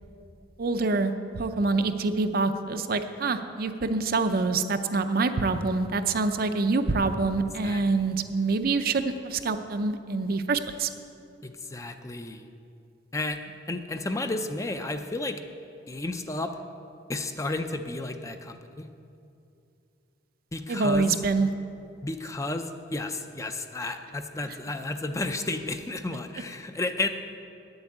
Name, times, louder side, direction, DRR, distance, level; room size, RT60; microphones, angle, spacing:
voice 1, 0.6-10.9 20.7-21.5, right 3 dB, 55° right, 9 dB, 0.6 m, -26 dB
voice 2, 11.4-12.5 13.1-13.4 13.7-15.4 15.9-16.5 17.1-18.9 20.5-21.1 22.0-27.1, left 2 dB, 15° left, 7 dB, 0.5 m, -32 dB
8.9 x 7.9 x 8.6 m, 2.5 s
head